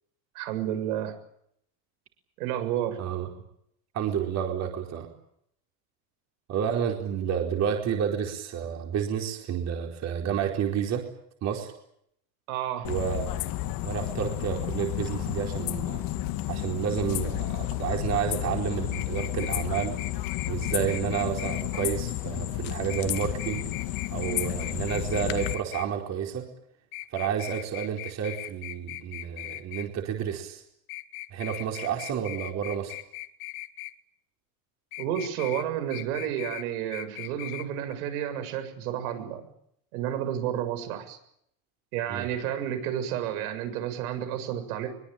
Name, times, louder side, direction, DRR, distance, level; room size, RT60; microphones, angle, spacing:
voice 1, 0.4-1.1 2.4-3.0 12.5-12.9 35.0-39.5 39.9-41.2 41.9-44.9, right 10 dB, 85° right, 8 dB, 7.1 m, -31 dB
voice 2, 3.0-3.3 3.9-5.1 6.5-11.0 11.4-11.7 12.8-13.3 13.8-16.0 16.5-20.0 20.5-23.7 24.1-26.5 27.1-30.6 31.3-33.0 42.1-42.3, right 8 dB, 40° right, 3 dB, 4.6 m, -30 dB
sound 1, 12.9-25.5, left 15 dB, 50° left, 2.1 m, -31 dB
sound 2, 18.9-21.9 22.9-25.9 26.9-29.9 30.9-33.9 34.9-35.7 35.9-36.7 36.9-37.7 37.9-38.0, left 19 dB, 75° left, 1.9 m, -39 dB
24.0 x 23.0 x 9.0 m, 0.73 s
cardioid pair, 150°, 43 cm